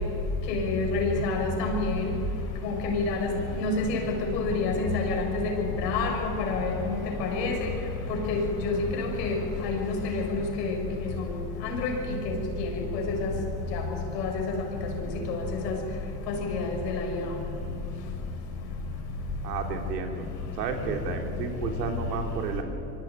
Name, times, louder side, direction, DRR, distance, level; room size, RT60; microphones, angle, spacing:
voice 1, 0.5-2.1 2.6-3.3 3.6-7.6 8.1-9.3 9.6-10.7 11.6-12.2 12.6-12.7 12.9-13.3 13.7-13.8 14.1-14.3 15.3-15.4 15.6-15.7 16.5-17.2, left 3 dB, 85° left, 2 dB, 7.1 m, -28 dB
voice 2, 19.4-20.3 20.6-22.6, right 5 dB, 90° right, 4 dB, 3.8 m, -32 dB
24.5 x 24.5 x 9.7 m, 2.9 s
hypercardioid pair, 80°, 47 cm